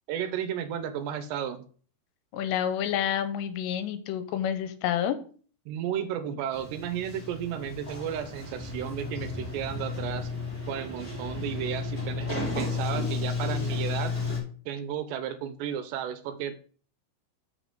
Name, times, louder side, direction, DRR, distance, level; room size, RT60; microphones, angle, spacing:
voice 1, 0.1-1.6 5.7-10.3 10.7-14.2 14.7-16.6, right 9 dB, 85° right, 10 dB, 2.8 m, -33 dB
voice 2, 2.3-5.2, left 9 dB, 85° left, 10 dB, 2.7 m, -29 dB
Sliding door, 6.5-14.4, left 4 dB, 10° left, 2.7 m, -33 dB
7.1 x 6.3 x 3.8 m, 0.43 s
omnidirectional pair, 5.1 m